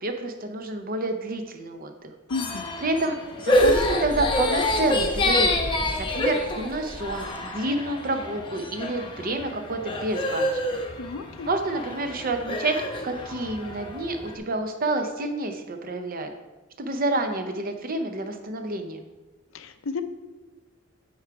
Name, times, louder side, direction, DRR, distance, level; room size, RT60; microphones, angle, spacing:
voice 1, 0.0-2.1 2.8-3.2 3.4-5.5 6.1-10.8 11.5-12.8 13.0-16.3 16.8-19.0, right 2 dB, 45° right, 6 dB, 0.6 m, -29 dB
voice 2, 2.3-2.6 11.0-11.5 19.5-20.0, left 4 dB, 65° left, 10 dB, 0.6 m, -32 dB
sound 1, 2.3-14.4, left 1 dB, 25° left, 0.8 m, -27 dB
8.6 x 4.7 x 4.6 m, 1.2 s
head